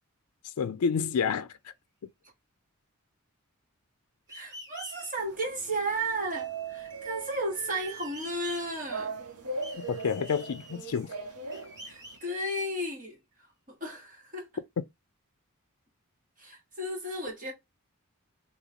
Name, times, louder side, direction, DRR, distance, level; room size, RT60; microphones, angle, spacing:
voice 1, 0.4-1.7 9.8-11.1, left 6 dB, 80° left, 0.4 m, -29 dB
sound 1, 4.3-5.1 7.9-9.1 9.6-11.1 11.5-13.1, equal, 15° right, 1.3 m, -47 dB
voice 2, 4.3-9.1 11.9-13.2 13.8-14.5 16.4-17.5, right 1 dB, 35° right, 1.8 m, -34 dB
sound 2, 5.2-12.2, right 4 dB, 85° right, 0.9 m, -40 dB
3.2 x 2.9 x 3.6 m
head